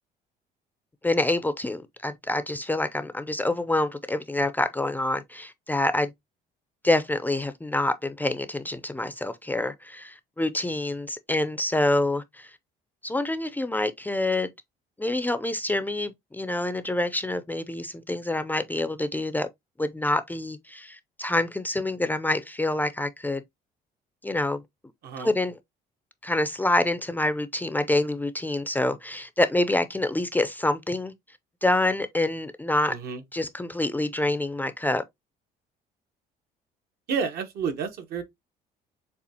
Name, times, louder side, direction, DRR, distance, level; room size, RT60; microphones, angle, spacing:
voice 1, 1.0-6.1 6.8-12.5 13.0-14.5 15.0-19.5 19.8-23.4 24.2-24.6 25.2-25.5 26.2-31.1 31.6-33.0 33.3-35.0, left 2 dB, 10° left, 0.4 m, -26 dB
voice 2, 32.9-33.2 37.1-38.2, right 6 dB, 70° right, 1.2 m, -30 dB
6.9 x 2.4 x 2.8 m
cardioid pair, 110°, 17 cm